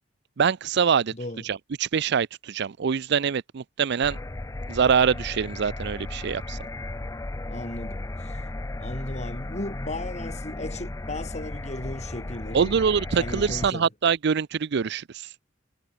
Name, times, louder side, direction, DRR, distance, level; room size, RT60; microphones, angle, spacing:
voice 1, 0.4-1.1 1.4-4.2 4.7-6.6 12.5-15.0, right 6 dB, 60° right, 0.5 m, -24 dB
voice 2, 1.1-1.5 7.5-8.4 8.8-12.8 13.2-13.9, left 1 dB, 35° left, 3.1 m, -36 dB
sound 1, 4.0-13.7, left 2 dB, 15° left, 0.5 m, -35 dB
head